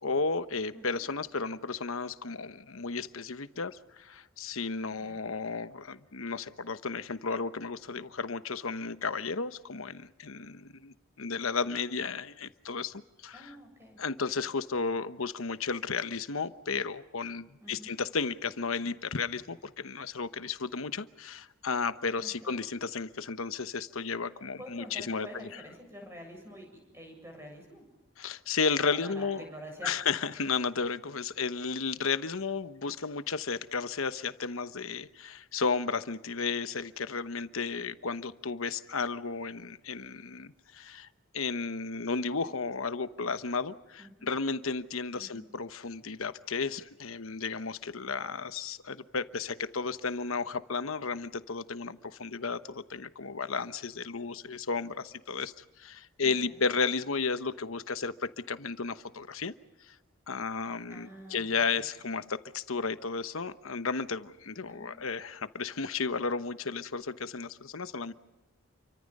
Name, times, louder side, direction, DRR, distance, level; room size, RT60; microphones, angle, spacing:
voice 1, 0.0-13.5 14.0-25.6 28.2-29.4 29.8-41.1 41.3-59.5 59.8-60.0 60.3-68.1, left 4 dB, 80° left, 12 dB, 1.0 m, -33 dB
voice 2, 0.7-1.0 4.9-5.2 13.3-14.0 17.6-17.9 22.2-22.6 24.6-26.7 26.9-27.8 28.8-30.0 44.0-44.3 45.1-45.5 56.2-56.6 60.9-61.8 64.7-65.1, equal, 10° right, 3 dB, 7.6 m, -48 dB
29.5 x 24.5 x 5.4 m, 1.1 s
head